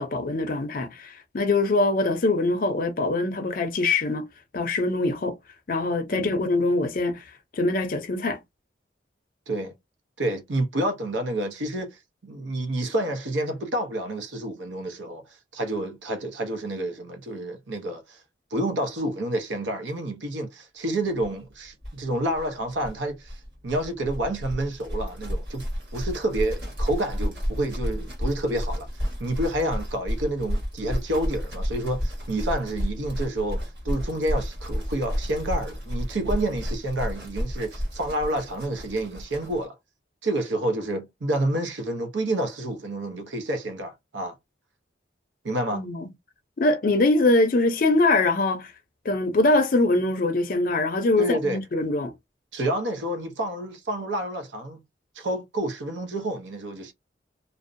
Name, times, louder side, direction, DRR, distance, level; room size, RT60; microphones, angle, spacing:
voice 1, 0.0-4.2 4.5-5.4 5.7-7.2 7.5-8.4 45.7-46.1 46.6-48.7 49.0-52.1, left 2 dB, 45° left, 0.4 m, -23 dB
voice 2, 10.2-15.2 15.5-18.2 18.5-25.6 25.9-28.9 29.2-39.7 40.2-44.4 45.4-45.8 51.2-51.6 52.5-54.8 55.1-56.9, right 1 dB, 75° right, 0.7 m, -29 dB
sound 1, 21.2-21.3 21.5-21.6 21.8-39.6, equal, 60° right, 1.4 m, -31 dB
2.6 x 2.1 x 2.5 m
head